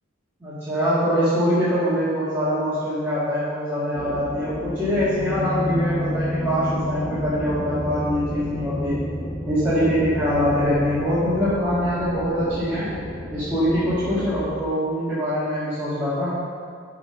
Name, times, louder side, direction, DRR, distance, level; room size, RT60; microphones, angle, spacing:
voice 1, 0.4-9.0 9.5-12.9 13.3-16.4, equal, 10° right, -13 dB, 1.9 m, -23 dB
sound 1, 3.9-14.5, equal, 5° left, 0.6 m, -30 dB
11.5 x 3.8 x 5.7 m, 2.1 s
head